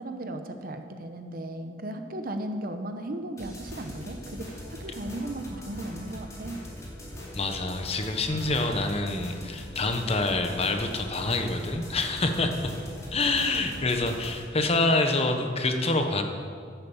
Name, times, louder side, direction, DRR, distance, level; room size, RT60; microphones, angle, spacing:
voice 1, 0.0-6.6 13.2-13.3, right 1 dB, 55° right, 7 dB, 0.9 m, -36 dB
sound 1, 3.4-14.4, equal, 20° left, 2.7 m, -41 dB
voice 2, 7.3-12.7 13.1-16.2, left 2 dB, 35° left, 5 dB, 1.0 m, -26 dB
10.5 x 8.8 x 7.2 m, 2.2 s
head